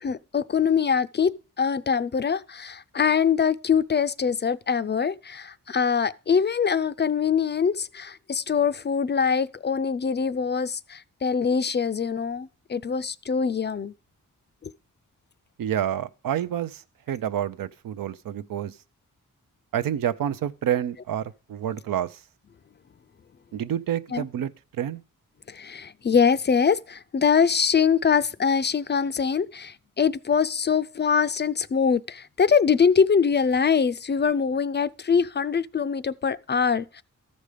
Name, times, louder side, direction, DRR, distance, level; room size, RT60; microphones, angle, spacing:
voice 1, 0.0-13.9 14.6-14.7 24.1-24.2 25.5-37.0, left 6 dB, 35° left, 0.4 m, -23 dB
voice 2, 15.6-16.8 17.1-18.7 19.7-22.2 23.5-24.5 24.8-25.0, right 10 dB, 85° right, 0.5 m, -28 dB
13.5 x 5.3 x 4.9 m
cardioid pair, 65°, 33 cm